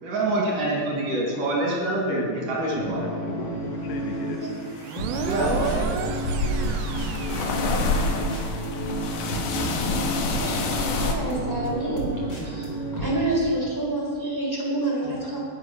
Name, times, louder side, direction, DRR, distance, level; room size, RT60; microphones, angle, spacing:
voice 1, 0.0-3.0 5.1-5.9, right 2 dB, 55° right, -3 dB, 3.6 m, -26 dB
voice 2, 1.4-4.5 5.7-5.9, left 3 dB, 80° left, 3 dB, 3.5 m, -35 dB
sound 1, 2.7-13.2, right 1 dB, 25° left, 3.0 m, -31 dB
sound 2, 4.8-8.3, right 9 dB, 80° right, 2.3 m, -34 dB
sound 3, 5.1-11.1, left 3 dB, 65° left, 2.3 m, -28 dB
voice 3, 10.2-12.1 12.4-15.4, right 2 dB, 5° left, -4 dB, 3.4 m, -28 dB
19.0 x 8.3 x 6.1 m, 2.1 s
omnidirectional pair, 5.0 m